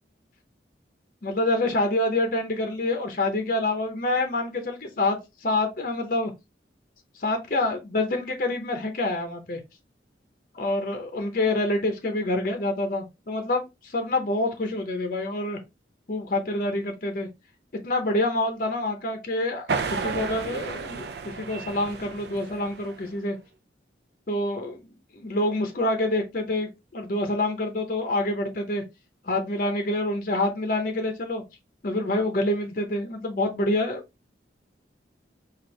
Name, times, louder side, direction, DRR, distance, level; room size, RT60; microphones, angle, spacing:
voice 1, 1.2-6.3 7.2-9.6 10.6-15.6 16.1-17.3 17.7-21.1 21.4-23.4 24.3-24.8 25.1-26.7 26.9-28.8 29.2-31.4 31.8-34.0, left 2 dB, 45° left, 0.7 m, -27 dB
sound 1, 19.7-23.2, right 5 dB, 60° right, 0.5 m, -32 dB
4.4 x 2.5 x 3.1 m
head